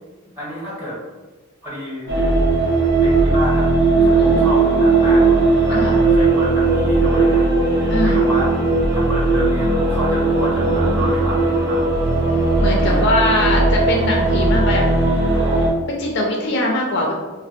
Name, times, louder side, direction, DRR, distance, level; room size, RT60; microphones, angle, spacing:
voice 1, 0.4-1.0 1.6-2.1 3.0-5.3 5.7-8.5 8.9-11.8 12.8-13.5, right 1 dB, 10° right, -10 dB, 1.3 m, -29 dB
sound 1, 2.1-15.7, right 3 dB, 60° right, 0.7 m, -17 dB
sound 2, 4.6-15.6, right 1 dB, 90° right, 1.0 m, -33 dB
voice 2, 7.9-8.2 12.6-14.9 15.9-17.1, left 2 dB, 55° left, 0 dB, 0.4 m, -21 dB
3.3 x 2.1 x 2.6 m, 1.2 s
head